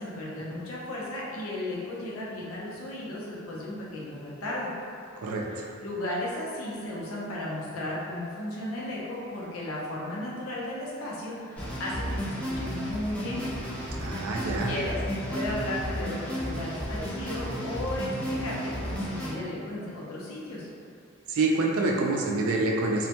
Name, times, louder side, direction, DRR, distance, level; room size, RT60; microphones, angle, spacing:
voice 1, 0.0-4.7 5.8-13.4 14.5-15.0 15.3-20.7, left 1 dB, 80° left, -5 dB, 0.5 m, -35 dB
voice 2, 5.2-5.7 14.0-14.7 21.3-23.1, right 2 dB, 90° right, -1 dB, 0.4 m, -27 dB
sound 1, 11.6-19.3, equal, 5° left, 0.3 m, -33 dB
2.1 x 2.1 x 2.8 m, 2.4 s
head